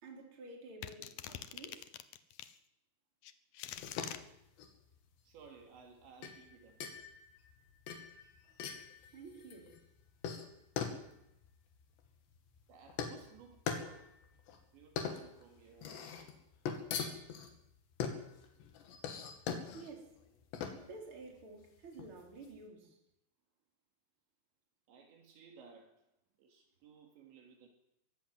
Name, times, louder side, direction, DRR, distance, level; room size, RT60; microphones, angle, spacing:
voice 1, 0.0-1.8 9.1-9.7 19.7-20.1 20.8-23.0, right 3 dB, 30° right, 4.6 m, -51 dB
sound 1, 0.8-2.6 3.2-4.2, left 12 dB, 90° left, 2.0 m, -45 dB
sound 2, 3.8-22.6, left 6 dB, 65° left, 4.3 m, -43 dB
voice 2, 5.2-6.8 12.7-14.1 14.7-16.0 24.9-26.0 26.4-27.7, right 6 dB, 70° right, 4.6 m, -58 dB
23.5 x 16.5 x 7.7 m
omnidirectional pair, 5.5 m